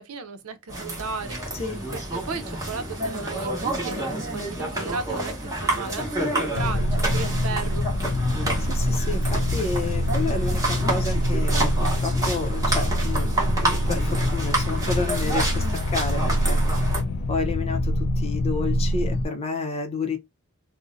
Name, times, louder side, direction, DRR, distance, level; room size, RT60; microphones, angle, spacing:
voice 1, 0.0-1.6 1.9-7.9 8.9-9.0, right 4 dB, 85° right, 0.7 m, -35 dB
sound 1, 0.7-17.0, right 1 dB, 15° right, 1.0 m, -29 dB
sound 2, 6.6-19.3, left 1 dB, 55° left, 0.3 m, -25 dB
voice 2, 8.6-16.6 17.3-20.2, left 3 dB, 30° left, 0.6 m, -30 dB
2.6 x 2.1 x 3.7 m
head